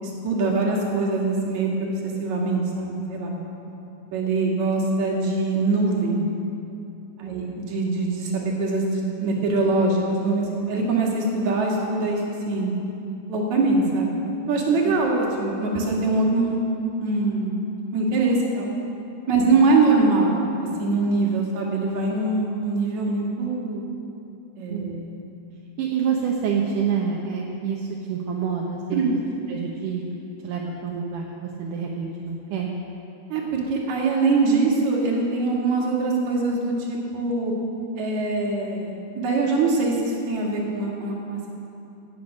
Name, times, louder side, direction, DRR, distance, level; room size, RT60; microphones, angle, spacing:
voice 1, 0.0-1.9 2.2-3.3 4.1-6.2 7.2-12.2 12.5-12.7 13.3-14.2 14.5-17.6 17.9-18.7 19.3-20.4 20.8-23.8 24.6-25.2 28.9-29.2 33.3-37.5 37.9-41.5, right 3 dB, 65° right, -2 dB, 3.2 m, -23 dB
voice 2, 7.2-7.6 14.8-14.9 19.4-19.6 24.7-25.0 25.8-29.0 29.5-30.0 30.4-32.7, right 6 dB, 80° right, -1 dB, 2.5 m, -28 dB
17.5 x 7.9 x 6.4 m, 2.8 s
omnidirectional pair, 3.7 m